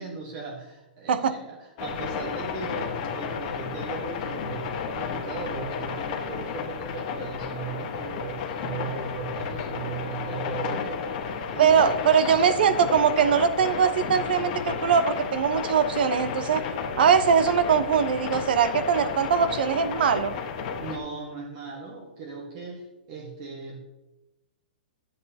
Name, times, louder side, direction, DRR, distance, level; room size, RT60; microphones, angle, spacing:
voice 1, 0.0-11.1 11.5-11.9 20.8-23.8, right 5 dB, 40° right, -1 dB, 1.3 m, -38 dB
sound 1, 1.8-21.0, left 6 dB, 40° left, 1.2 m, -32 dB
voice 2, 11.6-16.6 17.0-20.3, right 7 dB, 65° right, 12 dB, 0.8 m, -21 dB
10.5 x 8.1 x 2.8 m, 0.98 s
hypercardioid pair, 150°, 6 cm